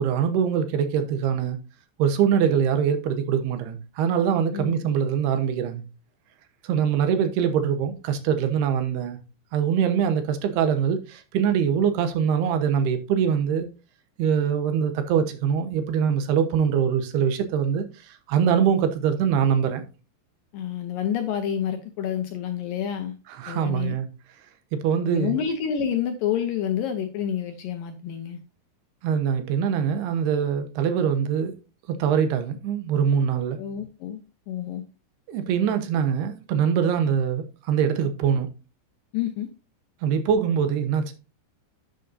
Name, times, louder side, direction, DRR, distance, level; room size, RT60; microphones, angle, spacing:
voice 1, 0.0-1.6 2.0-5.8 6.6-9.2 9.5-13.7 14.2-19.8 23.3-24.1 24.7-25.4 29.0-31.6 31.9-33.6 35.3-38.5 40.0-41.1, right 7 dB, 75° right, 2.8 m, -23 dB
voice 2, 20.5-23.1 23.5-24.0 25.1-28.4 33.6-34.2 34.5-34.8 39.1-39.5, left 9 dB, 80° left, 2.0 m, -28 dB
10.5 x 7.9 x 2.7 m
omnidirectional pair, 5.2 m